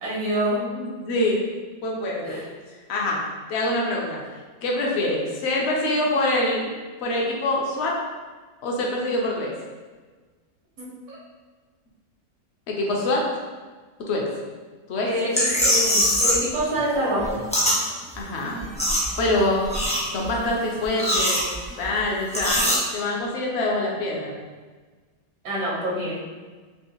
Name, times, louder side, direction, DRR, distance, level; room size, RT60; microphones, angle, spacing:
voice 1, 0.0-0.6 2.2-2.5 10.8-11.2 15.0-17.4 25.4-26.2, right 1 dB, 85° right, -6 dB, 1.4 m, -26 dB
voice 2, 0.7-1.4 1.8-2.4 2.7-3.2 3.5-4.2 4.6-6.7 7.0-8.0 8.6-9.5 12.7-13.3 14.1-14.3 14.9-15.1 18.2-18.6 19.2-19.6 20.1-21.5 21.8-22.6 22.9-24.3, left 1 dB, 60° left, -2 dB, 0.8 m, -25 dB
sound 1, 15.3-16.5 16.8-17.8 18.1-18.2 18.5-19.4 19.6-20.4 20.8-21.9 22.3-22.8, equal, 10° left, 0.4 m, -22 dB
3.6 x 2.5 x 2.8 m, 1.4 s
omnidirectional pair, 1.5 m